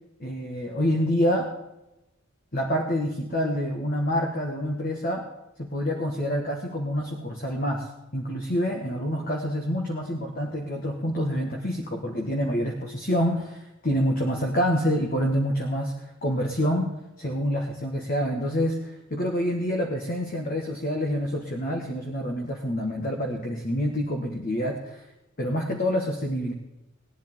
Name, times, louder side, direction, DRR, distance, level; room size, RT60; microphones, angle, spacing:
voice 1, 0.2-1.5 2.5-5.3 5.6-25.0 25.4-26.5, equal, 45° left, 1 dB, 1.6 m, -27 dB
20.5 x 10.5 x 3.8 m, 0.94 s
head